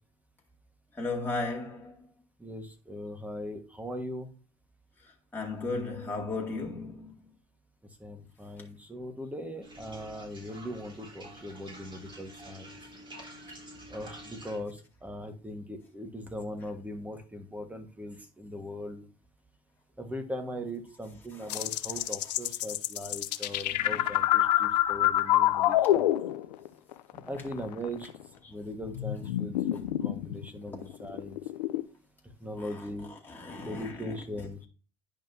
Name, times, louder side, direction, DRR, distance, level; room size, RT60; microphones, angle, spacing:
voice 1, 0.9-1.9 5.0-7.1 21.3-21.5 23.7-24.1 27.1-27.3 32.6-32.9 33.2-34.2, left 3 dB, 10° left, 2.1 m, -36 dB
voice 2, 2.4-4.3 8.0-12.7 13.9-19.0 20.0-26.1 27.2-28.1 28.5-31.4 32.4-33.1 33.6-34.6, equal, 5° right, 1.5 m, -40 dB
sound 1, 9.6-14.6, right 1 dB, 25° right, 3.8 m, -48 dB
sound 2, 21.5-26.7 26.9-28.2 28.8-31.8, left 14 dB, 90° left, 0.6 m, -27 dB
10.5 x 5.2 x 2.7 m
supercardioid pair, 95°, 21 cm